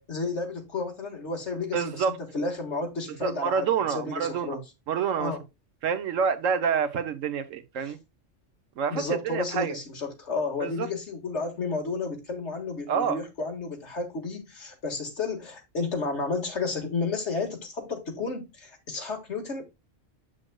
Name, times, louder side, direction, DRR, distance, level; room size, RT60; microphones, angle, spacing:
voice 1, 0.1-3.7 3.9-4.6 5.2-5.4 8.9-19.7, left 3 dB, 60° left, 2.1 m, -32 dB
voice 2, 1.7-2.1 3.2-4.6 4.9-5.3 5.8-8.0 8.8-9.8 10.6-10.9 12.9-13.2, right 6 dB, 80° right, 1.2 m, -27 dB
7.6 x 6.3 x 2.3 m
omnidirectional pair, 1.3 m